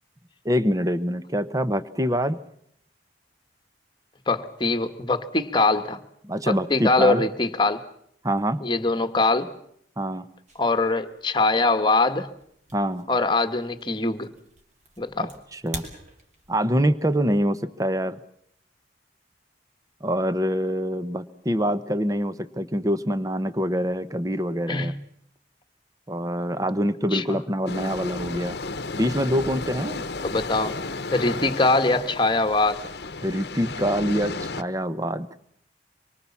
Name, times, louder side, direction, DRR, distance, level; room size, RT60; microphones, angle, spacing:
voice 1, 0.4-2.4 6.2-7.2 8.2-8.6 10.0-10.3 12.7-13.1 15.2-15.8 16.5-18.2 20.0-24.9 26.1-28.6 28.9-30.0 33.2-35.3, equal, 20° right, 0.9 m, -25 dB
voice 2, 4.3-6.0 6.5-7.9 8.6-9.5 10.5-12.3 13.1-14.3 15.0-15.3 24.7-24.9 27.1-27.4 30.2-30.7 31.1-32.9, left 3 dB, 25° left, 1.4 m, -23 dB
sound 1, 10.5-16.8, right 1 dB, 40° right, 3.2 m, -46 dB
sound 2, 27.7-34.6, left 3 dB, 60° left, 1.0 m, -33 dB
25.0 x 24.0 x 7.2 m
head